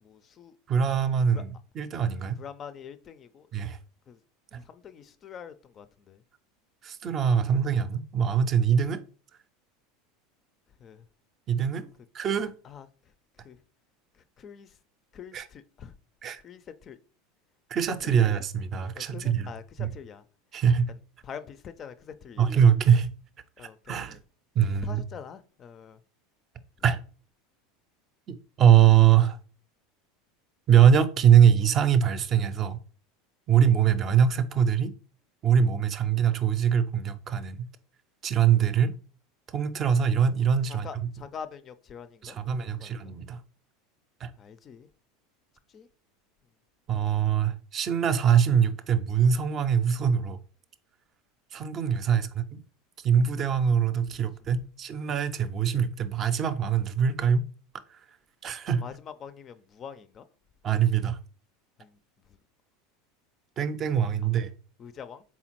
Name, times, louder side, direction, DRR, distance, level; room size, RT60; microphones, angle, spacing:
voice 1, 0.0-0.6 1.3-1.4 2.4-3.5 4.1-4.2 4.6-6.2 10.8-11.0 12.6-12.9 13.4-13.6 14.4-14.7 15.1-15.9 16.4-17.0 18.0-18.3 18.9-20.2 21.2-22.5 23.6-24.2 24.8-26.0 40.7-43.1 44.4-44.9 45.7-45.9 52.1-52.2 54.1-54.6 58.8-60.2 61.8-62.0 62.3-62.4 64.8-65.2, left 7 dB, 35° left, 0.4 m, -44 dB
voice 2, 0.7-2.4 3.5-3.8 4.5-4.6 6.8-9.0 11.5-11.9 12.1-12.5 15.3-15.5 16.2-16.4 17.7-19.5 19.8-19.9 20.5-20.9 22.4-23.1 23.6-24.2 24.6-25.0 26.8-27.0 28.3-29.4 30.7-32.8 33.5-34.9 35.4-37.6 38.2-38.9 39.5-40.9 42.2-43.4 44.2-44.3 46.9-50.4 51.5-52.6 53.0-57.5 58.4-58.8 60.6-61.2 63.6-64.5, right 8 dB, 35° right, 0.5 m, -23 dB
4.2 x 3.6 x 2.9 m
figure-of-eight pair, 80°, 0 cm